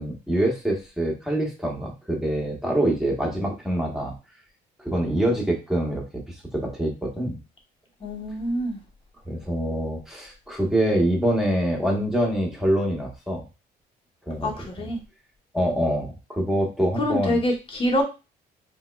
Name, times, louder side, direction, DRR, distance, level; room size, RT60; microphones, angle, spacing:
voice 1, 0.0-4.1 4.8-7.4 9.2-13.4 14.3-14.5 15.5-17.4, right 1 dB, ahead, -2 dB, 0.9 m, -25 dB
voice 2, 8.0-8.8 14.4-15.0 17.0-18.0, left 1 dB, 30° left, 1 dB, 1.0 m, -25 dB
3.5 x 3.0 x 2.2 m, 0.29 s
cardioid pair, 110°, 17 cm